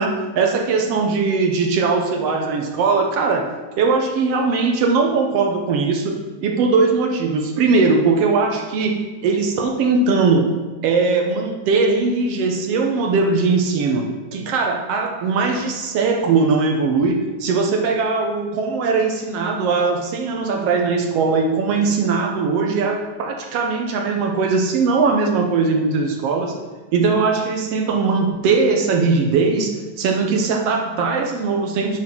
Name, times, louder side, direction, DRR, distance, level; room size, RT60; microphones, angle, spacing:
voice 1, 0.0-10.5 10.8-26.5 26.9-29.7 30.0-32.0, right 4 dB, 70° right, 2 dB, 1.6 m, -20 dB
9.6 x 5.8 x 4.5 m, 1.3 s
omnidirectional pair, 3.3 m